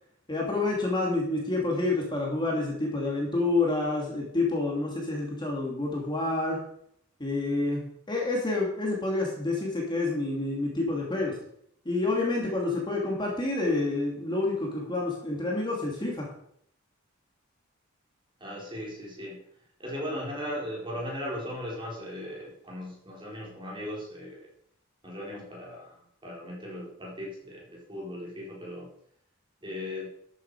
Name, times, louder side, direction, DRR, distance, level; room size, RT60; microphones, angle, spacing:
voice 1, 0.3-6.6 7.2-11.4 11.8-16.3, left 2 dB, 20° left, -2 dB, 2.7 m, -28 dB
voice 2, 18.4-19.4 19.8-24.5 25.0-28.9 29.6-30.1, left 1 dB, 25° right, -3 dB, 4.3 m, -37 dB
12.5 x 8.2 x 4.9 m, 0.69 s
head